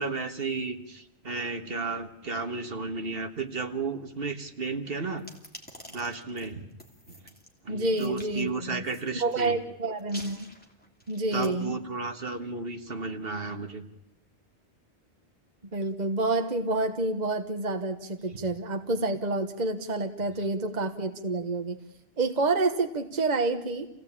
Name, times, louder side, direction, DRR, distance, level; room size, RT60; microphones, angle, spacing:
voice 1, 0.0-5.3 5.9-6.7 7.1-7.2 7.6-9.6 11.3-13.9 18.3-18.4, right 4 dB, 60° right, 7 dB, 1.7 m, -33 dB
sound 1, 5.2-7.5 8.0-8.3 8.8-9.5 10.0-11.5, equal, 10° left, 3.0 m, -48 dB
voice 2, 7.7-8.8 9.2-10.5 11.1-11.8 15.7-21.8 22.2-23.9, right 2 dB, 40° right, 6 dB, 1.3 m, -28 dB
27.5 x 17.0 x 8.7 m, 0.88 s
omnidirectional pair, 1.1 m